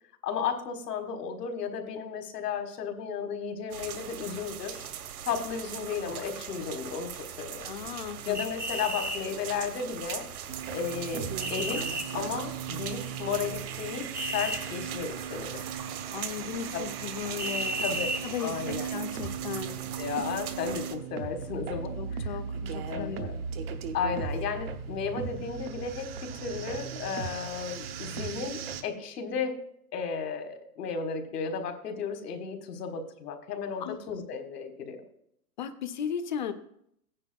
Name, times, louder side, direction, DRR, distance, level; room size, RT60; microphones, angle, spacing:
voice 1, 0.2-4.9 5.3-7.7 8.3-10.3 10.7-15.6 16.7-16.9 17.8-18.1 18.4-18.9 20.0-22.3 22.9-23.3 23.9-29.6 29.9-35.0, left 6 dB, 75° left, 5 dB, 1.7 m, -34 dB
sound 1, 3.7-21.0, right 9 dB, 65° right, 1.2 m, -41 dB
voice 2, 7.6-8.4 16.1-17.8 18.2-19.8 21.9-23.3 33.8-34.0 35.6-36.5, left 8 dB, 30° left, 11 dB, 0.5 m, -36 dB
sound 2, 8.3-9.2 11.4-12.0 14.1-14.6 17.4-18.2, right 1 dB, 5° right, 0.7 m, -32 dB
sound 3, 10.5-28.8, right 6 dB, 40° right, 0.7 m, -37 dB
15.5 x 9.8 x 2.3 m, 0.73 s
hypercardioid pair, 165°, 47 cm